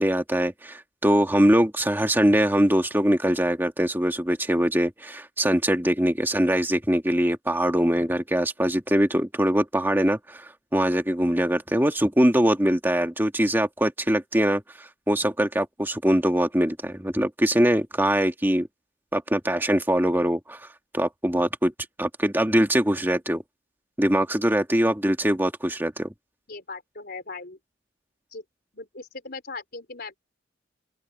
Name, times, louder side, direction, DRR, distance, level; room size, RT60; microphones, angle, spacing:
voice 1, 0.0-18.7 19.1-20.7 20.9-21.7 22.0-23.4 24.0-26.1, right 1 dB, 10° right, 1.8 m, -22 dB
voice 2, 26.5-27.6 28.3-28.4 28.7-30.1, left 3 dB, 55° left, 4.3 m, -38 dB
open air
head